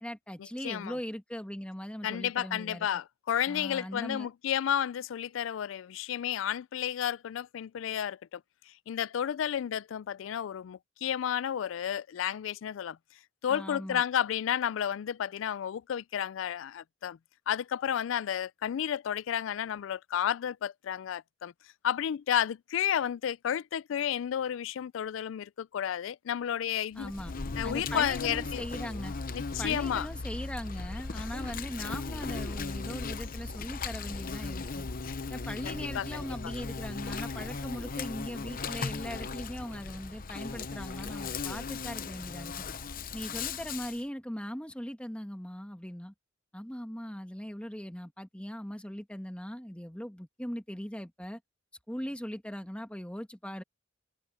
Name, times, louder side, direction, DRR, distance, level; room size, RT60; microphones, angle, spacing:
voice 1, 0.0-2.9 3.5-4.3 13.5-14.0 26.9-27.4 27.6-29.1 29.6-34.9 35.3-42.6 43.1-46.1 46.5-51.4 51.9-53.6, equal, 5° left, 1.5 m, -40 dB
voice 2, 0.6-1.0 2.0-8.4 8.9-13.0 13.4-17.2 17.5-21.5 21.8-27.1 27.6-28.6 29.3-30.1 35.6-36.3, left 9 dB, 75° left, 0.3 m, -32 dB
Insect, 27.0-44.0, left 4 dB, 45° left, 0.8 m, -37 dB
head